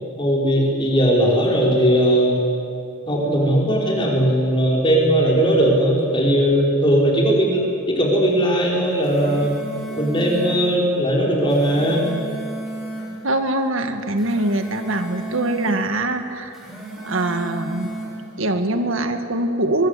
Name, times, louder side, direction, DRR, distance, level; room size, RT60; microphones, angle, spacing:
voice 1, 0.2-2.4 3.1-9.5 10.0-12.0, equal, 25° left, -2 dB, 4.9 m, -18 dB
sound 1, 8.8-10.7 11.3-13.1 14.0-15.8 16.4-18.2, right 2 dB, ahead, 5.6 m, -33 dB
voice 2, 13.2-16.6 17.0-17.9 18.4-19.9, right 1 dB, 75° right, 7 dB, 1.9 m, -23 dB
24.5 x 23.0 x 8.4 m, 2.5 s
head